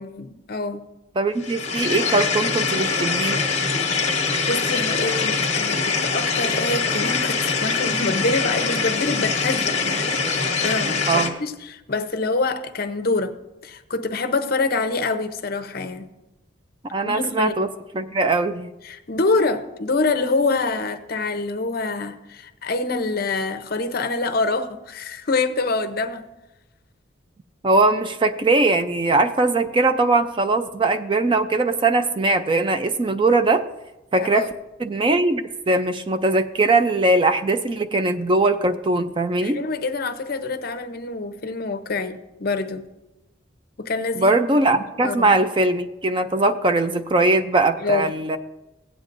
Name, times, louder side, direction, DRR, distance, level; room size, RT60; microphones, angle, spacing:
voice 1, 0.0-0.8 4.5-13.3 13.6-16.1 17.0-17.6 18.8-26.3 34.2-34.5 39.4-42.9 43.8-44.4 45.0-45.3 47.8-48.1, left 3 dB, 50° left, 9 dB, 0.7 m, -26 dB
voice 2, 1.2-3.4 11.1-11.4 16.9-17.7 17.9-18.7 27.6-33.6 34.1-34.5 34.8-39.6 44.2-48.4, right 2 dB, 25° right, 10 dB, 0.4 m, -20 dB
sound 1, 1.4-11.3, left 4 dB, 35° left, 1.2 m, -23 dB
16.0 x 8.9 x 2.6 m, 0.99 s
head